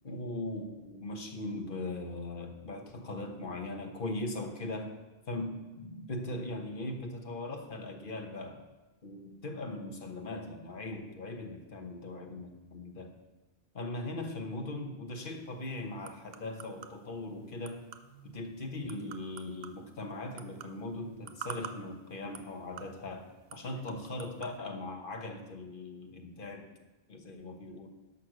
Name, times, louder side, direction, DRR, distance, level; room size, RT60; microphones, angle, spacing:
voice 1, 0.0-4.9 5.3-8.6 9.0-13.1 13.7-17.9 18.2-26.7 27.1-27.9, left 2 dB, 55° left, 4 dB, 1.4 m, -39 dB
sound 1, 15.1-24.6, right 7 dB, 70° right, 0.9 m, -50 dB
11.5 x 6.5 x 6.1 m, 1.1 s
omnidirectional pair, 1.0 m